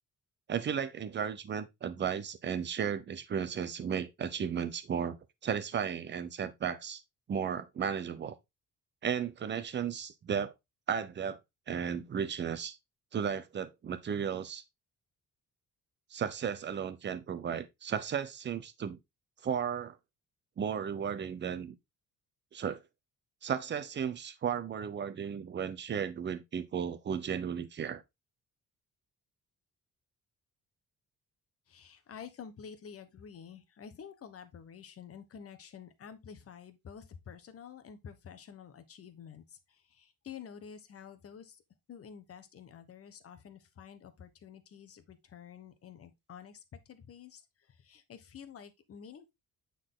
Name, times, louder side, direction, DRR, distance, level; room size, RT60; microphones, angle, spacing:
voice 1, 0.5-5.2 5.4-7.0 7.3-8.4 9.0-10.5 10.9-11.4 11.7-12.8 13.1-14.6 16.1-19.0 19.4-20.0 20.6-21.7 22.5-22.8 23.4-28.0, right 7 dB, 35° right, 0.7 m, -34 dB
voice 2, 31.7-41.6 41.9-49.3, left 7 dB, 45° left, 1.1 m, -50 dB
9.0 x 4.1 x 3.8 m
cardioid pair, 175°, 33 cm